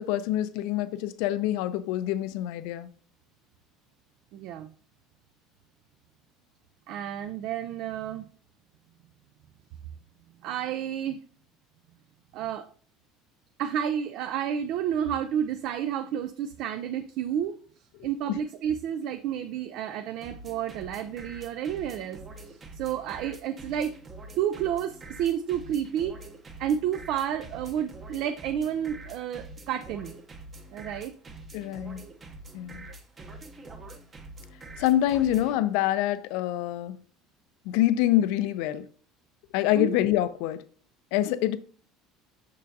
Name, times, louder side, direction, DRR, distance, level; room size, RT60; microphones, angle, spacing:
voice 1, 0.0-2.9 18.3-18.4 31.5-32.0 32.5-32.9 34.8-37.0 37.7-38.8 39.5-40.6 41.1-41.6, left 13 dB, 70° left, 0.5 m, -26 dB
voice 2, 4.3-4.7 6.9-8.3 10.4-11.2 12.3-12.7 13.6-17.6 18.0-22.2 22.4-23.9 24.4-26.2 26.6-30.2 30.7-31.1 39.7-40.0, right 9 dB, 55° right, 0.4 m, -30 dB
sound 1, 20.2-35.6, right 2 dB, 20° right, 0.8 m, -45 dB
6.6 x 6.3 x 2.7 m
cardioid pair, 165°, 0 cm